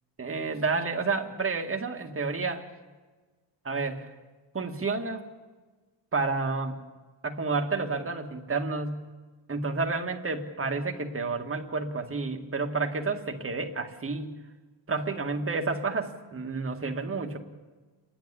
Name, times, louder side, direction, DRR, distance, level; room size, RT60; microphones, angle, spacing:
voice 1, 0.2-2.7 3.6-4.1 4.5-5.2 6.1-6.8 7.2-9.1 9.5-14.4 14.9-17.4, right 4 dB, 25° right, 3 dB, 2.0 m, -30 dB
29.0 x 11.5 x 9.9 m, 1.3 s
cardioid pair, 140°, 48 cm